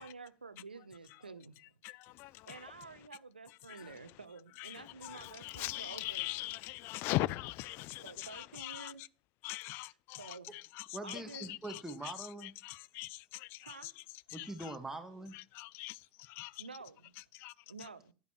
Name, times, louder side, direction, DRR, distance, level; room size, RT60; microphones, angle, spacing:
voice 1, 0.0-1.6 2.1-2.2 2.4-6.3 8.0-9.0 9.7-10.5 11.0-11.5 13.6-13.9 16.6-17.1 17.7-18.1, right 4 dB, 85° right, 0.7 m, -50 dB
voice 2, 1.8-2.3 4.6-8.9 9.4-10.4 11.1-11.8 12.6-13.8 14.4-14.5 15.5-16.0 16.3-16.5 17.4-17.5, left 19 dB, 45° left, 0.4 m, -40 dB
voice 3, 10.9-12.5 14.3-15.4, right 2 dB, 10° right, 1.5 m, -43 dB
11.5 x 9.9 x 3.1 m
figure-of-eight pair, 75°, 5 cm